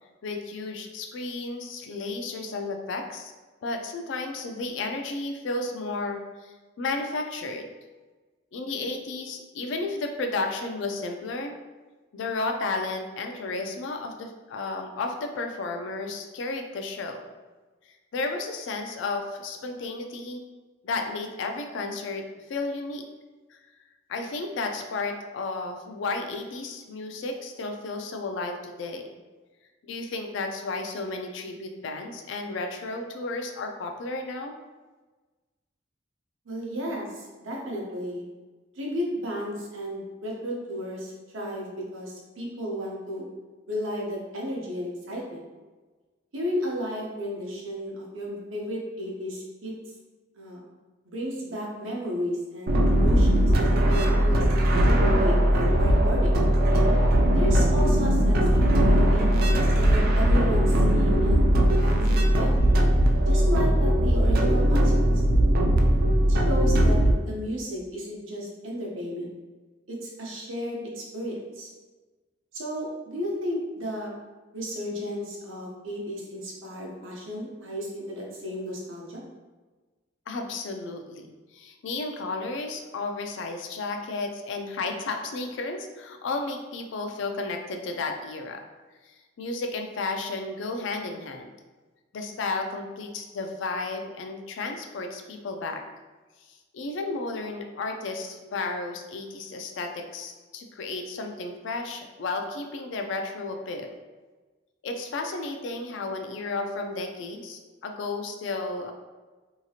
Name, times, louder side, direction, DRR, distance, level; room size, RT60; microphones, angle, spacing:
voice 1, 0.2-3.3 3.6-7.7 8.5-11.5 12.1-17.3 18.1-20.4 20.8-22.2 22.5-23.0 23.5-23.6 24.1-29.1 29.9-34.5 80.3-81.3 81.5-88.7 89.1-91.5 92.1-95.8 96.5-103.9 104.8-108.9, left 3 dB, 65° left, 4 dB, 0.4 m, -33 dB
voice 2, 36.5-38.2 38.7-43.3 43.7-45.4 46.3-49.7 50.4-50.6 51.1-54.4 54.6-56.4 57.3-59.3 59.7-62.7 63.2-65.2 66.3-69.3 69.9-71.7 72.5-74.1 74.5-79.2, equal, 85° right, -3 dB, 0.7 m, -33 dB
sound 1, 52.7-67.1, right 1 dB, 50° right, 0.3 m, -20 dB
2.8 x 2.4 x 2.7 m, 1.3 s
head